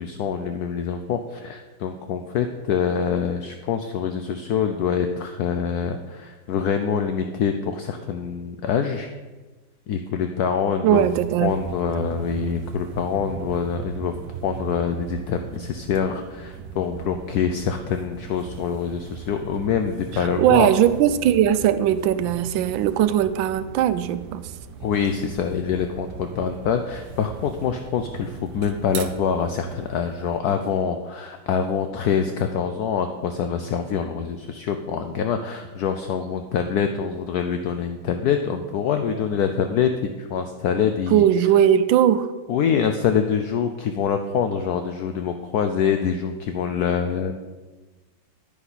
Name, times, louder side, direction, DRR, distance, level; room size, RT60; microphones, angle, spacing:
voice 1, 0.0-9.1 9.9-11.1 11.4-14.2 14.4-20.7 24.8-41.2 42.5-47.3, left 7 dB, 70° left, 1.0 m, -25 dB
voice 2, 10.8-11.5 20.4-24.5 41.1-42.3, right 10 dB, 90° right, 1.4 m, -19 dB
sound 1, 10.9-30.4, right 6 dB, 70° right, 1.2 m, -38 dB
10.0 x 9.8 x 4.1 m
omnidirectional pair, 2.0 m